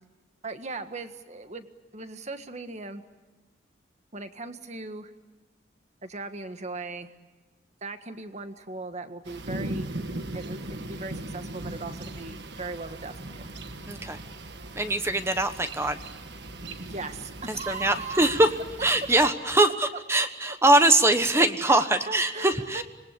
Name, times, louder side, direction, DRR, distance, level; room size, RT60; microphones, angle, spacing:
voice 1, 0.4-1.7 1.9-3.0 4.1-5.1 6.0-7.1 7.8-9.9 10.3-13.5 16.9-18.5 20.2-20.6 21.3-22.8, right 3 dB, 40° right, 8 dB, 1.6 m, -38 dB
sound 1, 9.3-19.3, right 1 dB, 60° right, 1.5 m, -38 dB
voice 2, 13.9-14.2 14.7-16.0 17.5-18.6 18.8-22.8, right 2 dB, 15° right, 9 dB, 1.2 m, -22 dB
26.5 x 21.0 x 8.4 m, 1.2 s
head